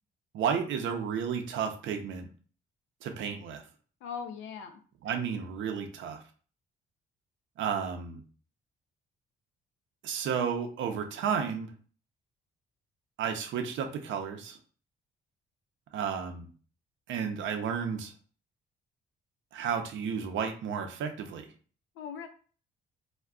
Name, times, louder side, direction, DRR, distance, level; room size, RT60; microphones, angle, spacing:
voice 1, 0.3-2.3 3.0-3.6 5.0-6.2 7.6-8.2 10.0-11.7 13.2-14.6 15.9-16.5 17.1-18.1 19.5-21.5, right 7 dB, 75° right, 5 dB, 0.5 m, -32 dB
voice 2, 4.0-4.8 22.0-22.3, left 7 dB, 85° left, 7 dB, 0.5 m, -39 dB
2.3 x 2.1 x 3.6 m, 0.40 s
cardioid pair, 90°, 20 cm